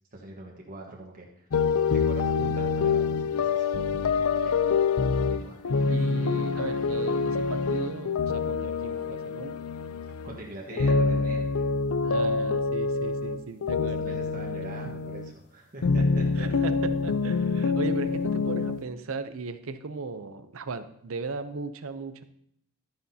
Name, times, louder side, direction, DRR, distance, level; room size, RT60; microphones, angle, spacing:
voice 1, 0.1-1.4 1.9-3.7 4.3-4.5 5.1-5.6 10.2-11.7 13.8-16.5, right 2 dB, 40° right, -2 dB, 1.4 m, -42 dB
sound 1, 1.5-10.4 10.7-15.3 15.8-18.8, left 4 dB, 90° left, 0.5 m, -26 dB
voice 2, 5.9-9.6 12.0-14.2 16.4-22.2, right 4 dB, 65° right, 11 dB, 0.7 m, -37 dB
12.0 x 9.5 x 2.8 m, 0.71 s
head